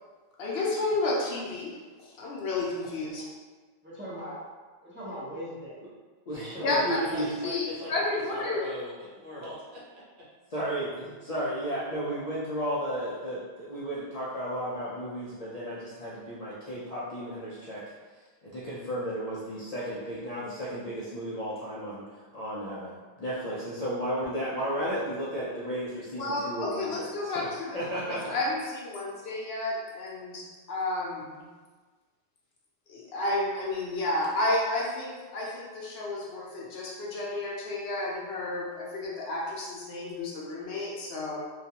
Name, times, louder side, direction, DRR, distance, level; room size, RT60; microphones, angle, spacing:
voice 1, 0.4-1.7 2.0-3.2 6.6-7.0 7.4-8.6 26.2-31.5 32.9-41.4, left 2 dB, 80° left, -3 dB, 0.9 m, -31 dB
voice 2, 3.8-4.4 4.8-5.9 6.3-7.2, equal, 15° right, -10 dB, 0.5 m, -40 dB
voice 3, 6.3-7.5 10.5-17.8 18.4-28.3, equal, 55° left, -8 dB, 0.5 m, -34 dB
voice 4, 6.9-10.0, left 1 dB, 60° right, -6 dB, 0.8 m, -41 dB
2.3 x 2.3 x 2.7 m, 1.4 s
omnidirectional pair, 1.0 m